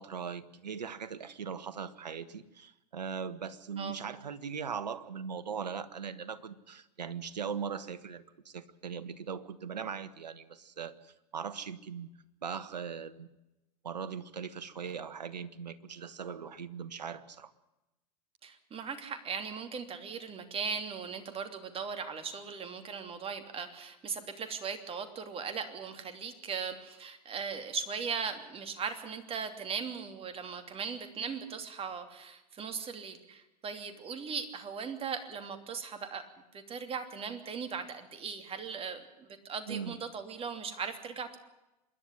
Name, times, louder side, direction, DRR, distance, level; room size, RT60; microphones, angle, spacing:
voice 1, 0.0-12.1 12.4-13.3 13.8-17.5 39.7-40.0, right 6 dB, 90° right, 14 dB, 1.3 m, -40 dB
voice 2, 3.8-4.2 18.4-36.3 36.5-41.4, right 6 dB, 25° right, 8 dB, 3.0 m, -38 dB
26.5 x 11.0 x 9.9 m, 0.96 s
hypercardioid pair, 100°, 21 cm